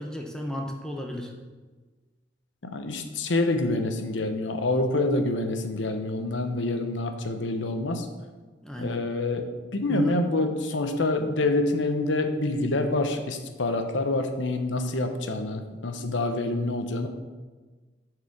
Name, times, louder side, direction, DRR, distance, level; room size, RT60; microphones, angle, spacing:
voice 1, 0.0-1.3 8.6-9.0 9.9-10.2, left 1 dB, 5° left, 1 dB, 0.7 m, -34 dB
voice 2, 2.6-8.1 8.8-17.1, left 2 dB, 85° left, 7 dB, 0.9 m, -27 dB
8.3 x 4.9 x 6.0 m, 1.3 s
head